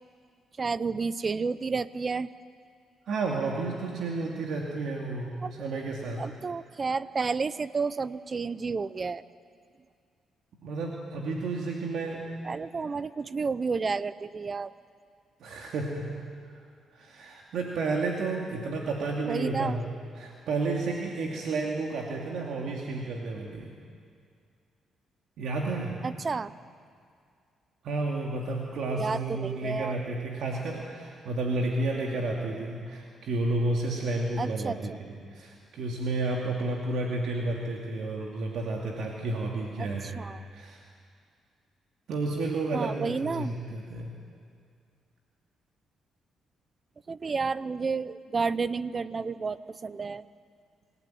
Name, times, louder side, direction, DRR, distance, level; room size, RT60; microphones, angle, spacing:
voice 1, 0.6-2.3 5.4-5.7 6.2-9.2 12.4-14.7 19.3-19.8 26.0-26.5 28.9-29.9 34.4-34.8 39.8-40.4 42.7-43.5 47.1-50.2, right 4 dB, 35° right, 16 dB, 0.7 m, -31 dB
voice 2, 3.1-6.2 10.6-12.2 15.4-16.2 16.9-23.7 25.4-26.0 27.8-40.8 42.1-44.1, right 2 dB, 70° right, -1 dB, 2.7 m, -31 dB
27.0 x 17.5 x 9.3 m, 2.2 s
cardioid pair, 90°, 0 cm